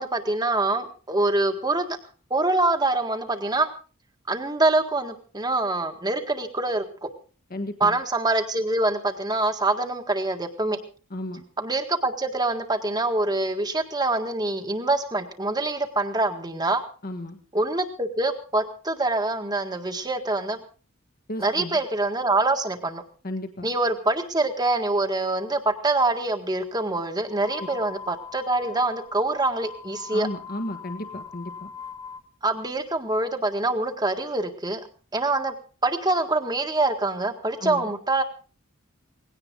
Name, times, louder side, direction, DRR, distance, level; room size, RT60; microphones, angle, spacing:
voice 1, 0.0-2.0 2.3-3.7 4.3-7.1 7.8-10.8 11.6-16.8 17.5-20.6 21.4-23.0 23.6-30.3 32.4-34.8 35.1-35.5 35.8-38.2, right 2 dB, 20° right, 7 dB, 1.8 m, -25 dB
voice 2, 7.5-7.9 11.1-11.4 17.0-17.4 21.3-21.8 23.2-23.7 27.6-27.7 30.1-31.7 37.6-37.9, left 1 dB, 45° left, 6 dB, 1.5 m, -34 dB
sound 1, 27.3-32.2, left 6 dB, 20° left, 1.6 m, -41 dB
19.5 x 17.0 x 3.8 m, 0.38 s
head